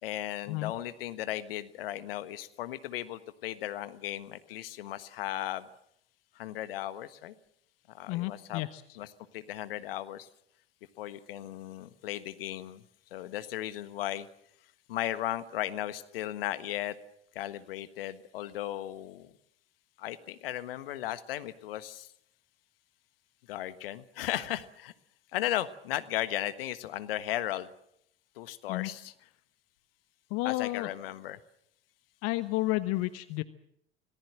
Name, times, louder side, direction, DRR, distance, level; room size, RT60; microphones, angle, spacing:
voice 1, 0.0-5.7 6.3-7.3 7.9-8.6 9.0-9.1 9.3-10.3 11.0-12.8 13.1-14.3 14.9-17.0 17.3-19.3 20.0-22.1 23.5-24.9 25.3-27.7 28.4-29.1 30.4-31.4, left 13 dB, 65° left, 14 dB, 1.5 m, -36 dB
voice 2, 8.1-9.0 28.7-28.9 30.3-30.9 32.2-33.4, left 18 dB, 50° left, 14 dB, 1.1 m, -31 dB
26.5 x 19.0 x 7.7 m, 0.74 s
figure-of-eight pair, 70°, 31 cm